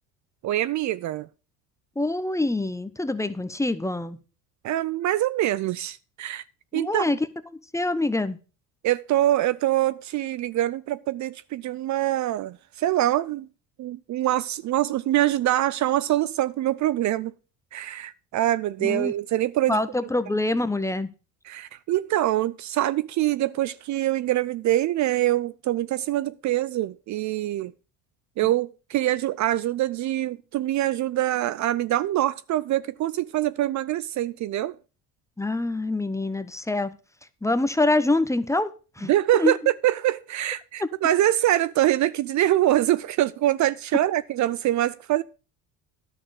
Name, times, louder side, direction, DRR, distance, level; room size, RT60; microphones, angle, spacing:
voice 1, 0.4-1.3 4.6-6.4 6.7-7.1 8.8-13.5 13.8-17.3 17.7-19.8 21.5-27.7 28.4-34.8 39.1-45.2, right 14 dB, 50° right, 0.5 m, -24 dB
voice 2, 2.0-4.2 6.7-7.2 7.5-8.4 18.8-19.1 19.7-21.1 35.4-36.9 37.4-39.6, left 2 dB, 10° left, 0.8 m, -25 dB
10.5 x 6.3 x 6.5 m
supercardioid pair, 90°, 38 cm